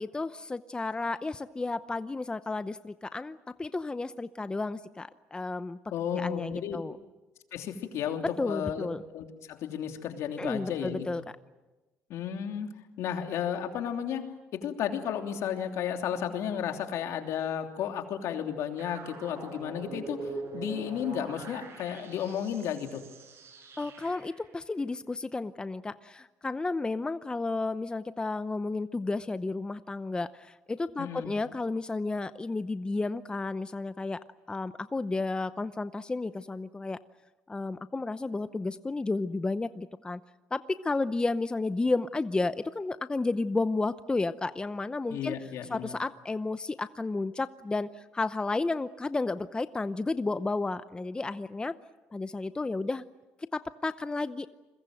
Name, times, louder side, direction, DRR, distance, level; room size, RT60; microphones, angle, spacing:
voice 1, 0.0-5.8 6.1-7.0 8.4-9.0 10.4-11.2 23.8-34.2 34.5-37.0 37.5-40.2 40.5-45.4 45.7-51.7 52.1-53.0 53.5-54.5, left 3 dB, 15° left, 13 dB, 0.8 m, -32 dB
voice 2, 5.9-6.8 7.5-8.9 9.1-11.1 12.1-12.7 13.0-14.2 14.6-23.0 31.0-31.4 45.1-45.9, left 8 dB, 75° left, 4 dB, 3.1 m, -33 dB
sound 1, 18.8-24.5, right 3 dB, 55° right, 7.8 m, -43 dB
29.0 x 22.0 x 7.8 m, 1.1 s
cardioid pair, 90°, 5 cm